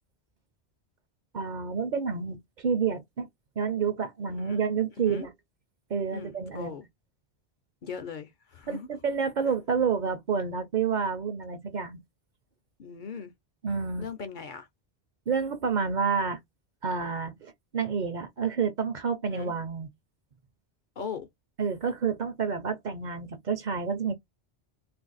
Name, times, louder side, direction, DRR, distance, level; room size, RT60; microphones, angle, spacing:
voice 1, 1.3-3.3 3.6-5.3 5.9-6.8 8.7-12.0 13.6-14.1 15.3-16.4 16.8-19.9 21.6-24.1, right 6 dB, 55° right, 0.6 m, -29 dB
voice 2, 6.1-6.8 7.8-8.9 12.8-13.3 14.0-14.7 19.3-19.5 21.0-21.3, left 6 dB, 60° left, 0.6 m, -39 dB
2.8 x 2.5 x 3.9 m
omnidirectional pair, 1.1 m